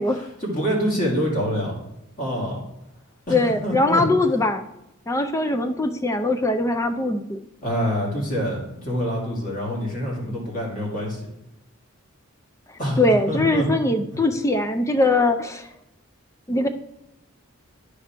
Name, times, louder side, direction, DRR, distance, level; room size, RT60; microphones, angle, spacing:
voice 1, 0.0-1.8 2.2-2.6 3.3-4.0 7.6-11.3 12.8-13.0 13.3-13.7, equal, 40° left, -3 dB, 2.3 m, -26 dB
voice 2, 3.3-4.7 5.1-7.4 13.0-15.7 16.5-16.7, left 2 dB, 15° left, 7 dB, 0.4 m, -21 dB
9.5 x 3.3 x 5.9 m, 0.89 s
head